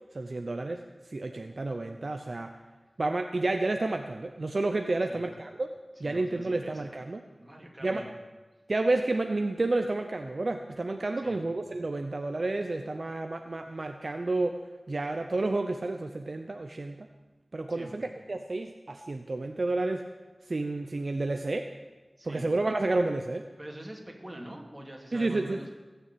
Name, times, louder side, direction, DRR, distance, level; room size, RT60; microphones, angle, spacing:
voice 1, 0.1-0.8 1.1-2.5 3.0-5.7 6.0-7.2 7.8-8.0 8.7-14.6 14.9-17.1 17.5-20.0 20.5-21.7 22.2-23.5 25.1-25.6, right 2 dB, 55° right, 5 dB, 0.8 m, -30 dB
voice 2, 6.0-6.8 7.4-8.1 11.2-11.4 17.7-18.0 22.2-22.5 23.6-25.7, right 1 dB, 20° right, 1 dB, 3.0 m, -45 dB
20.5 x 7.0 x 8.6 m, 1.2 s
wide cardioid pair, 70°, 0 cm